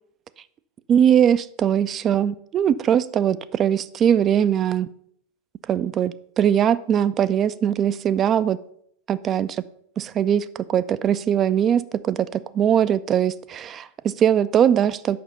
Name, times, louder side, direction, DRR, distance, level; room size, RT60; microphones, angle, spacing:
voice 1, 0.9-4.9 5.7-8.6 9.1-9.6 10.0-15.2, right 9 dB, 30° right, 15 dB, 0.3 m, -21 dB
6.8 x 5.7 x 5.1 m, 0.67 s
figure-of-eight pair, 90°, 0 cm